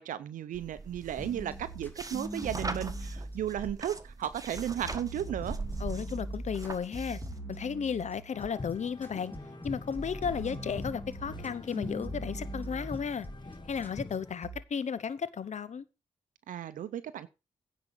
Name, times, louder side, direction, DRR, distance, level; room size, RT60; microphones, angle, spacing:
voice 1, 0.0-5.6 16.5-17.3, right 10 dB, 80° right, 0.6 m, -35 dB
sound 1, 0.5-7.4, right 3 dB, 25° right, 1.4 m, -42 dB
sound 2, 1.2-3.9 4.2-8.5 9.0-14.2 14.4-14.6, right 1 dB, 15° left, 2.9 m, -41 dB
voice 2, 5.8-7.2 7.5-9.3 9.6-13.3 13.7-15.9, left 6 dB, 60° left, 1.1 m, -34 dB
sound 3, 8.3-14.3, left 3 dB, 35° left, 1.6 m, -44 dB
9.7 x 5.0 x 7.3 m
supercardioid pair, 45°, 13 cm